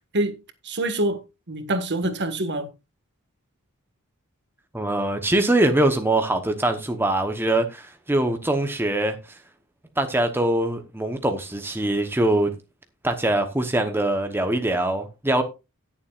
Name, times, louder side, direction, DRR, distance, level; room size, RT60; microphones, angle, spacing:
voice 1, 0.6-1.2 1.5-2.7, right 1 dB, 55° right, 1.6 m, -25 dB
voice 2, 4.7-9.4 10.0-12.5 13.0-15.4, right 1 dB, 10° right, 0.9 m, -23 dB
17.5 x 7.2 x 2.4 m
head